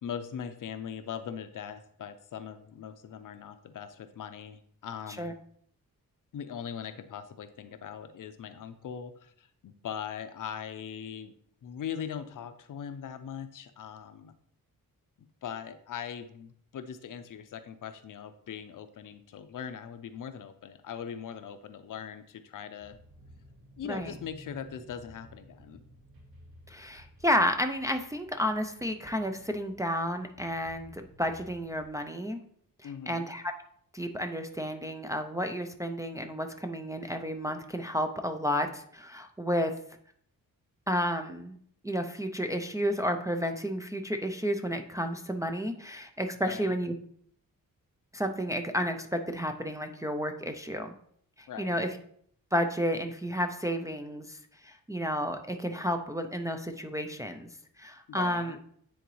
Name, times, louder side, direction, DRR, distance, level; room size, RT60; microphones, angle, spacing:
voice 1, 0.0-5.3 6.3-11.3 11.6-14.3 15.2-23.0 23.8-25.8 32.8-33.3 46.4-46.8 51.5-51.8 58.1-58.6, left 8 dB, 65° left, 10 dB, 0.6 m, -40 dB
sound 1, 22.8-31.8, right 1 dB, 85° right, 2.8 m, -55 dB
voice 2, 26.7-32.4 32.8-33.5 33.9-39.7 40.9-41.6 41.8-46.9 48.1-50.9 51.4-51.9 52.5-54.4 54.6-57.5 57.8-58.6, equal, 10° right, 5 dB, 0.3 m, -31 dB
9.3 x 3.8 x 3.1 m, 0.64 s
wide cardioid pair, 140°, 34 cm